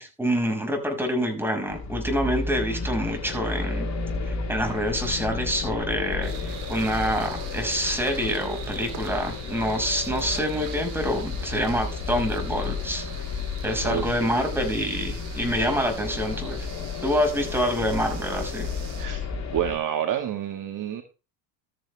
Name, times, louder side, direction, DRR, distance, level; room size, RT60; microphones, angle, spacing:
voice 1, 0.0-3.9 4.2-13.0 13.6-16.7 17.0-18.7, equal, 5° right, 3 dB, 6.0 m, -26 dB
sound 1, 1.7-19.8, left 4 dB, 35° left, 3.9 m, -32 dB
sound 2, 6.2-19.1, right 9 dB, 65° right, 3.3 m, -44 dB
voice 2, 13.8-14.3 19.0-21.0, right 10 dB, 40° right, 6 dB, 1.8 m, -29 dB
13.0 x 9.2 x 3.5 m, 0.31 s
hypercardioid pair, 85°, 50 cm